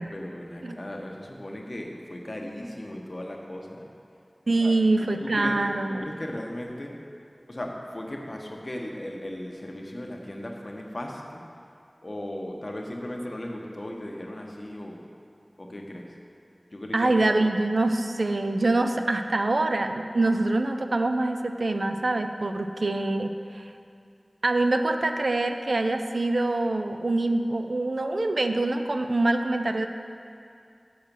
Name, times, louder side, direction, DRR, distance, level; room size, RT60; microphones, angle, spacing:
voice 1, 0.0-3.9 4.5-4.7 5.2-5.6 5.9-6.9 7.5-11.4 12.0-15.0 15.6-16.1 16.7-17.3, left 1 dB, 50° left, 0 dB, 1.0 m, -37 dB
voice 2, 4.5-6.1 16.9-23.7 24.4-29.9, right 2 dB, 85° right, 7 dB, 0.4 m, -25 dB
6.4 x 6.0 x 6.7 m, 2.5 s
wide cardioid pair, 55°, 0 cm